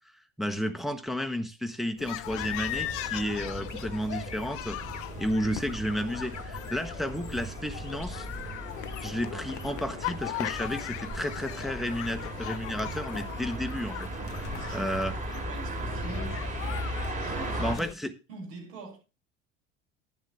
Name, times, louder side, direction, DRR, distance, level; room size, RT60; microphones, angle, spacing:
voice 1, 0.4-4.8 5.2-8.3 9.0-15.1 17.6-18.1, equal, ahead, 1.3 m, -32 dB
sound 1, 2.0-17.9, left 15 dB, 40° left, 0.7 m, -39 dB
sound 2, 2.2-17.7, right 2 dB, 20° right, 3.2 m, -37 dB
sound 3, 2.7-7.0 7.8-9.9 10.2-13.1, left 5 dB, 80° left, 1.4 m, -49 dB
voice 2, 14.4-15.0 15.3-16.9 17.2-18.0 18.3-19.0, right 2 dB, 60° right, 7.1 m, -44 dB
11.0 x 11.0 x 3.6 m
figure-of-eight pair, 70°, 36 cm